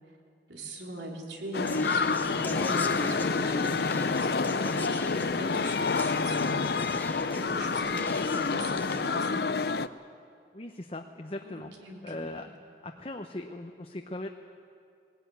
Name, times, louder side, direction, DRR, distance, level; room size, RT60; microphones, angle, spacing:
voice 1, 0.5-9.5 11.4-12.5, right 1 dB, 80° right, 1 dB, 3.3 m, -42 dB
sound 1, 1.5-9.9, left 4 dB, 60° left, 0.6 m, -28 dB
Conversation, 1.6-9.0, left 1 dB, 10° left, 1.0 m, -39 dB
voice 2, 10.5-12.5 12.8-14.3, left 1 dB, 30° left, 4 dB, 0.9 m, -39 dB
20.5 x 18.0 x 9.2 m, 2.3 s
head